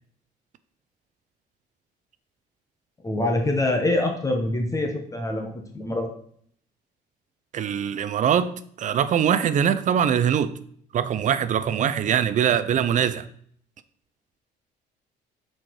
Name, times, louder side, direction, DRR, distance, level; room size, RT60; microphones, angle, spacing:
voice 1, 3.0-6.1, left 2 dB, 20° left, 1.2 m, -25 dB
voice 2, 7.5-10.5 10.9-13.2, right 8 dB, 45° right, 0.6 m, -22 dB
7.5 x 4.5 x 4.6 m
cardioid pair, 110°, 17 cm